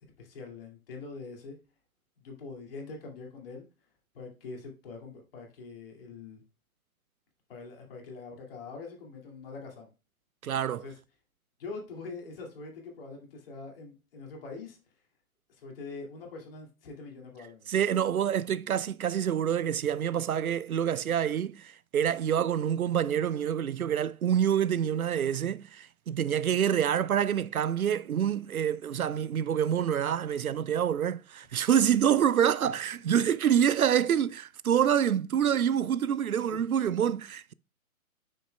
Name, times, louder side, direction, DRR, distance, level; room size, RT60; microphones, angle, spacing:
voice 1, 0.2-1.6 2.2-3.6 4.1-6.4 7.5-9.9 10.7-11.0 11.6-14.8 15.5-17.7 32.6-32.7 36.5-36.6, left 4 dB, 40° left, 2.3 m, -43 dB
voice 2, 10.4-10.8 17.7-37.5, right 9 dB, 75° right, 0.5 m, -27 dB
9.1 x 6.3 x 2.2 m
figure-of-eight pair, 130°, 43 cm